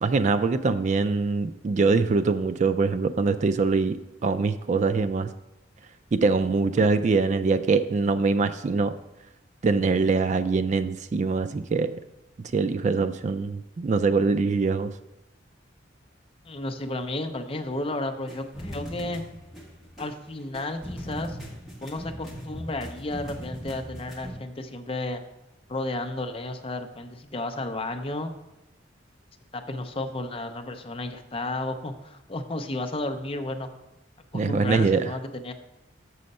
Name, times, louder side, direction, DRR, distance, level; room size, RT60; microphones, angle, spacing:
voice 1, 0.0-5.3 6.1-9.0 9.6-12.0 12.5-14.9 34.3-35.1, right 4 dB, 40° right, 12 dB, 0.3 m, -23 dB
voice 2, 16.4-19.2 20.0-21.4 21.8-25.2 25.7-28.3 29.5-33.7 34.3-35.5, left 2 dB, 30° left, 7 dB, 0.6 m, -32 dB
sound 1, 18.3-24.3, equal, ahead, 1.7 m, -39 dB
6.9 x 6.3 x 5.4 m, 0.95 s
head